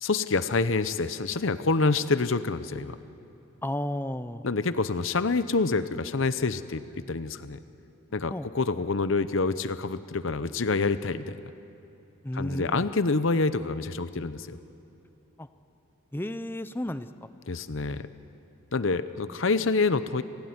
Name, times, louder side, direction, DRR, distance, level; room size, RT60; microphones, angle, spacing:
voice 1, 0.0-3.0 4.4-6.8 7.1-7.6 8.1-11.4 12.3-14.6 17.5-18.1 18.7-20.2, left 3 dB, 65° left, 12 dB, 0.8 m, -27 dB
voice 2, 3.6-4.5 8.3-8.5 12.2-12.8 15.4-15.5 16.1-17.3, left 1 dB, 10° left, 11 dB, 0.6 m, -33 dB
29.0 x 17.0 x 9.6 m, 2.9 s
head